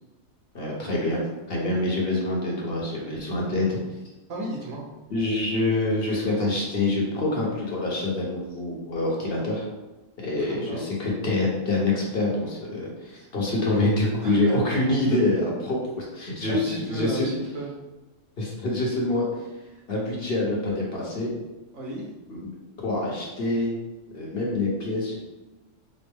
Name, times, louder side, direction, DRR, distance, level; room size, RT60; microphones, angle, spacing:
voice 1, 0.5-1.2 1.5-3.8 5.1-9.6 10.2-17.3 18.4-19.3 19.9-21.3 22.3-22.4 22.8-23.8 24.1-25.2, left 2 dB, 50° left, -3 dB, 1.1 m, -26 dB
voice 2, 4.3-4.8 10.4-10.9 13.1-13.3 13.7-13.8 14.2-14.6 15.1-15.5 16.5-17.7 21.7-22.1, right 1 dB, 85° right, -3 dB, 1.4 m, -33 dB
5.1 x 2.0 x 3.6 m, 1.1 s
omnidirectional pair, 1.3 m